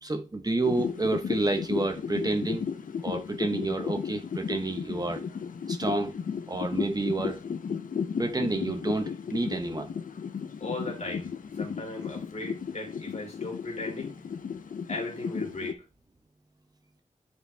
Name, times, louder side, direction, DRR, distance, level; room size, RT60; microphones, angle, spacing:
voice 1, 0.0-2.6 3.0-5.2 5.7-6.1 6.5-7.4 8.2-9.9, right 2 dB, 30° right, 1.1 m, -29 dB
sound 1, 0.6-15.7, left 6 dB, 80° left, 0.7 m, -35 dB
voice 2, 10.6-14.2 14.9-15.8, left 2 dB, 55° left, 2.8 m, -37 dB
9.9 x 4.5 x 3.4 m
wide cardioid pair, 115°, 14 cm